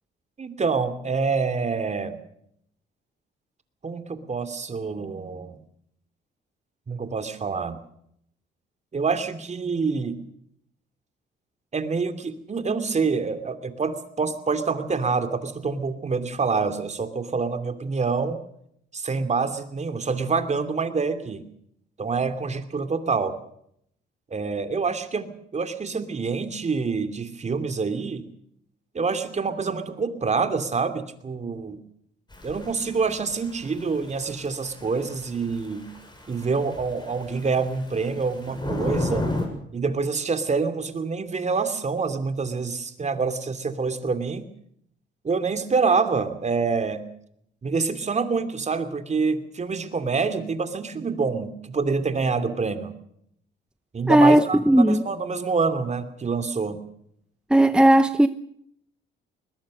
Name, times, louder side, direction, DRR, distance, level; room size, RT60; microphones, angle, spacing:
voice 1, 0.4-2.2 3.8-5.6 6.9-7.8 8.9-10.2 11.7-18.4 18.9-21.4 22.0-23.4 24.3-28.3 28.9-31.8 32.4-35.9 36.3-39.3 39.7-44.5 45.2-47.0 47.6-52.9 53.9-56.8, right 4 dB, 35° right, 2.7 m, -26 dB
Thunder / Rain, 32.3-39.5, left 1 dB, 20° left, 7.2 m, -34 dB
voice 2, 54.1-55.0 57.5-58.3, right 1 dB, 5° right, 0.8 m, -16 dB
21.5 x 21.0 x 6.5 m
cardioid pair, 90°, 20 cm